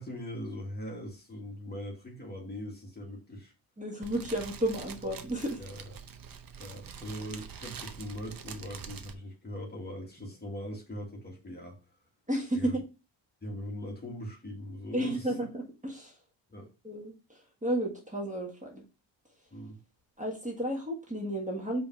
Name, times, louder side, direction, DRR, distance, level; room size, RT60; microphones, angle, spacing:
voice 1, 0.0-3.5 5.6-6.0 6.5-11.8 12.5-12.7 13.4-15.3 16.5-16.7 19.5-19.8, equal, 20° left, -1 dB, 1.8 m, -41 dB
voice 2, 3.8-5.6 12.3-12.8 14.9-16.1 16.8-18.8 20.2-21.8, right 1 dB, 15° right, 0 dB, 1.7 m, -32 dB
Fire, 4.0-9.1, right 7 dB, 50° right, 0.8 m, -45 dB
5.2 x 3.5 x 5.7 m, 0.30 s
wide cardioid pair, 140°, 45 cm